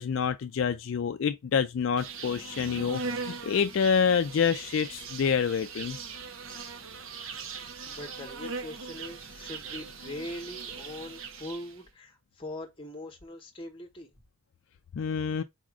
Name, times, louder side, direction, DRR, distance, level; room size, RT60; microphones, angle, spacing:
voice 1, 0.0-6.0 14.9-15.4, left 6 dB, 65° left, 0.3 m, -27 dB
Insect, 2.0-11.8, right 4 dB, 70° right, 0.8 m, -40 dB
voice 2, 7.9-14.1, left 1 dB, 25° left, 1.0 m, -41 dB
4.2 x 2.5 x 4.7 m
head